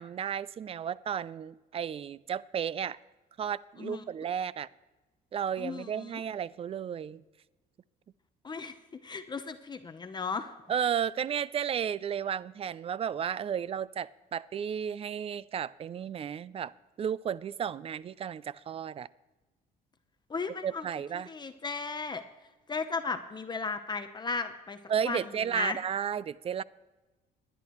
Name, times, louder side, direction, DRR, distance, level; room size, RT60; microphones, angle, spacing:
voice 1, 0.0-3.0 3.4-4.7 5.3-7.2 10.7-16.7 17.0-19.1 20.6-21.3 24.9-26.6, right 8 dB, 35° right, 0.4 m, -33 dB
voice 2, 5.6-6.2 8.4-8.8 9.0-10.5 20.3-20.9 21.1-22.2 22.7-24.8 25.0-25.2 25.5-25.8, left 4 dB, 25° left, 0.8 m, -35 dB
19.5 x 11.5 x 3.1 m
cardioid pair, 110°, 17 cm